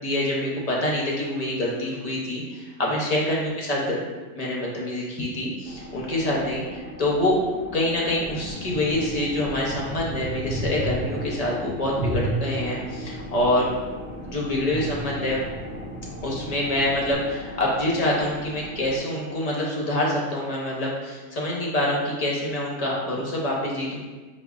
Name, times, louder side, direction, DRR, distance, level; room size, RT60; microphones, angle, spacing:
voice 1, 0.0-4.0 4.3-7.4 7.7-13.7 14.2-15.4 16.2-24.1, left 1 dB, 45° left, -3 dB, 0.5 m, -26 dB
sound 1, 5.6-19.0, equal, 10° right, 0.5 m, -39 dB
sound 2, 8.2-17.1, right 1 dB, 65° right, 0.5 m, -34 dB
5.1 x 2.1 x 2.3 m, 1.3 s
omnidirectional pair, 1.3 m